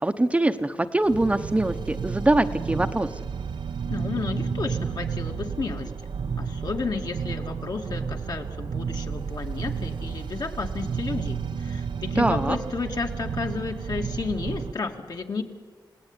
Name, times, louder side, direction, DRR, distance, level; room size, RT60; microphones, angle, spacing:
voice 1, 0.0-3.1 12.2-12.6, right 1 dB, 15° right, 8 dB, 0.9 m, -23 dB
sound 1, 1.0-14.7, right 6 dB, 85° right, 0.8 m, -32 dB
voice 2, 3.9-5.9 6.4-15.4, left 4 dB, 60° left, 3 dB, 2.3 m, -32 dB
29.0 x 18.0 x 9.9 m, 1.5 s
wide cardioid pair, 145°, 8 cm